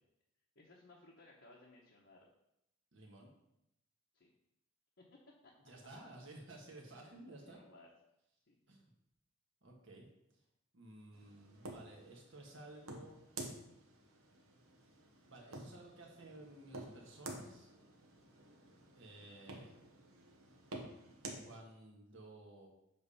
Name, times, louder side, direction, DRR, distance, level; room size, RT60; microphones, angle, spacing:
voice 1, 0.5-2.3 4.1-4.3 5.0-5.5 6.9-7.9 8.5-8.6, left 2 dB, 60° left, -3 dB, 1.0 m, -62 dB
voice 2, 2.9-3.3 5.6-7.6 8.7-8.9 9.6-10.4 10.7-13.2 15.2-17.7 18.9-19.7 21.4-22.7, right 2 dB, 65° right, -1 dB, 1.6 m, -55 dB
sound 1, 11.1-21.4, right 2 dB, 80° right, 1.2 m, -51 dB
7.8 x 3.4 x 5.6 m, 0.82 s
head